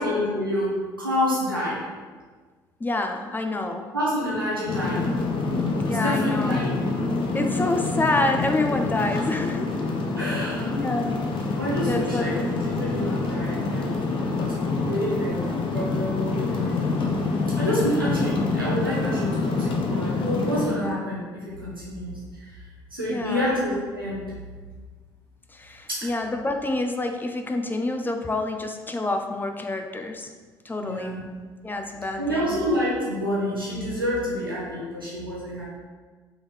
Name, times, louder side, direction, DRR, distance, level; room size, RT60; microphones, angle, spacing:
voice 1, 0.0-1.8 3.9-5.1 6.0-6.7 9.0-9.2 10.2-10.7 11.6-12.4 12.6-13.9 14.9-15.4 15.7-17.3 17.6-22.5 22.9-24.3 25.9-26.1 30.8-31.2 32.1-35.6, equal, 90° right, -6 dB, 0.9 m, -28 dB
voice 2, 2.8-3.9 5.9-6.5 7.3-9.7 10.3-10.4 10.7-11.2 11.9-12.5 23.1-23.4 25.5-30.3 30.6-31.2 31.6-32.5, left 2 dB, 15° left, 4 dB, 0.5 m, -27 dB
sound 1, 4.7-20.7, left 3 dB, 50° left, 0.7 m, -26 dB
3.8 x 3.8 x 3.3 m, 1.4 s
figure-of-eight pair, 50°, 11 cm